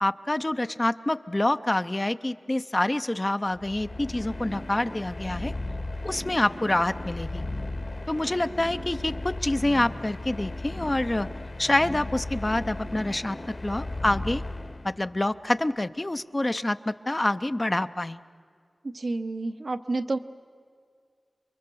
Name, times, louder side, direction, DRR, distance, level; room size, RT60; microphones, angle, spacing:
voice 1, 0.0-5.5 6.0-7.5 8.1-11.3 11.6-13.4 13.6-14.4 14.8-18.2, left 1 dB, 30° left, 11 dB, 0.6 m, -27 dB
sound 1, 3.5-15.2, left 2 dB, 55° left, 1.6 m, -36 dB
voice 2, 18.8-20.2, right 2 dB, 65° right, 8 dB, 0.8 m, -29 dB
28.5 x 23.0 x 6.9 m, 2.1 s
wide cardioid pair, 75°, 0 cm